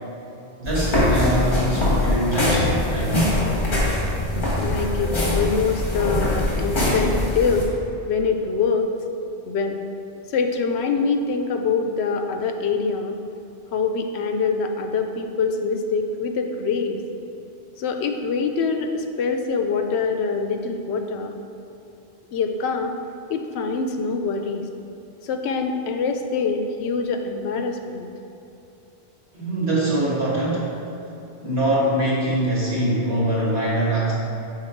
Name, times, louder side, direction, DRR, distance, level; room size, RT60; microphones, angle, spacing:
sound 1, 0.6-7.6, left 1 dB, 50° left, 1.7 m, -22 dB
voice 1, 0.6-3.4 29.3-30.8 31.4-34.1, right 1 dB, 75° right, -7 dB, 1.9 m, -23 dB
voice 2, 4.6-7.7 8.1-8.9 9.5-9.8 10.3-13.2 13.7-17.0 17.8-21.4 22.3-22.9 23.3-24.7 25.2-28.1, left 4 dB, 80° left, 5 dB, 0.8 m, -24 dB
5.8 x 4.4 x 4.4 m, 2.9 s
omnidirectional pair, 1.1 m